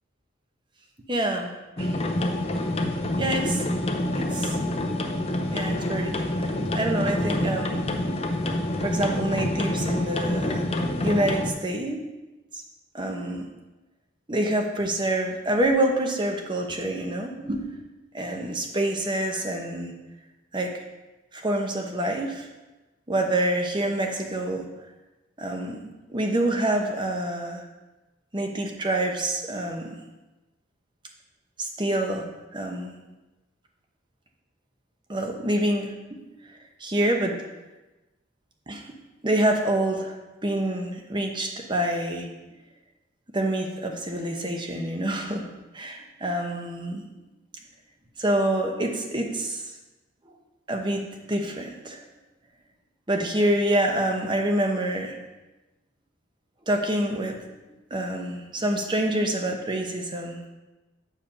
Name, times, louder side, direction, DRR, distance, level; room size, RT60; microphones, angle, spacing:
voice 1, 1.1-1.5 1.8-1.9 3.2-3.7 4.1-4.6 5.5-7.9 8.8-10.8 11.0-12.0 12.5-12.6 12.9-13.4 14.3-17.8 18.1-19.9 20.5-20.8 21.3-22.5 23.1-24.6 25.4-25.8 26.1-27.6 28.3-29.8 31.6-32.9 35.1-36.2 36.8-37.3 38.7-38.8 39.2-42.3 43.3-45.5 45.7-47.0 48.2-49.7 50.7-52.0 53.1-55.1 56.7-57.5 57.9-60.6, right 1 dB, 25° right, 3 dB, 0.9 m, -27 dB
sound 1, 1.8-11.5, left 1 dB, 30° left, 0.7 m, -27 dB
8.5 x 5.0 x 5.4 m, 1.1 s
head